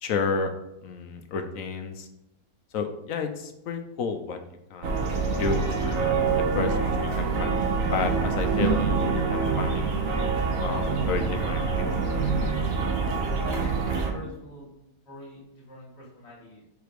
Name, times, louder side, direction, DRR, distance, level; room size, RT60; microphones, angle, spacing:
voice 1, 0.0-0.5 0.8-2.1 2.7-4.4 4.7-5.0 5.4-6.3 6.5-7.6 7.9-9.9 10.6-11.7 12.0-12.1, left 4 dB, 65° left, 7 dB, 1.0 m, -31 dB
sound 1, 4.8-14.1, right 4 dB, 60° right, 1.3 m, -25 dB
voice 2, 13.4-14.7 15.1-16.6, left 1 dB, 45° left, -3 dB, 2.0 m, -44 dB
5.0 x 5.0 x 4.6 m, 0.86 s
omnidirectional pair, 1.6 m